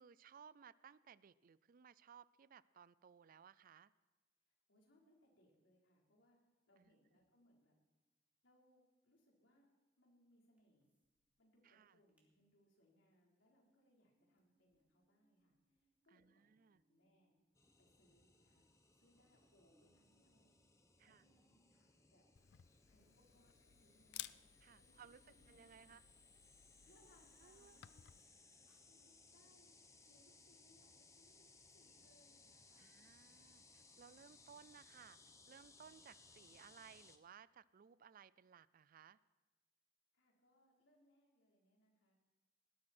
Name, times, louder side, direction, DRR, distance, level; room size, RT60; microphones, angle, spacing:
voice 1, 0.0-3.9 6.8-6.9 11.6-12.0 16.1-16.8 21.0-21.2 24.6-26.0 27.4-27.8 32.8-35.2 35.5-39.2, right 7 dB, 45° right, 19 dB, 0.4 m, -62 dB
voice 2, 4.5-6.4 6.7-7.7 8.4-9.7 10.0-10.9 11.4-17.3 17.8-20.5 21.0-22.2 22.9-24.4 24.8-25.9 26.9-28.0 28.9-29.8 30.0-31.5 31.7-32.9 40.1-42.1, left 1 dB, 85° left, -2 dB, 4.1 m, -74 dB
sound 1, 10.6-11.2 11.5-11.6 11.9-12.3 12.7-29.8, right 1 dB, 10° right, 2.9 m, -85 dB
sound 2, 17.5-37.2, left 3 dB, 15° left, 1.0 m, -66 dB
Camera, 22.4-28.2, left 14 dB, 65° left, 0.4 m, -57 dB
18.5 x 12.5 x 4.4 m, 1.3 s
head